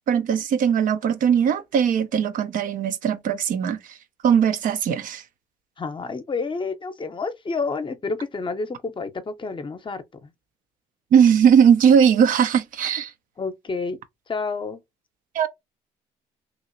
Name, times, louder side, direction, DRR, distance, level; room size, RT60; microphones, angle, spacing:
voice 1, 0.1-4.0 4.2-5.2 11.1-13.1 15.3-15.5, right 8 dB, 60° right, 0.6 m, -19 dB
voice 2, 5.8-10.3 13.4-14.0 14.3-14.8, left 4 dB, 30° left, 0.7 m, -29 dB
3.0 x 2.8 x 2.6 m
hypercardioid pair, 60°, 16 cm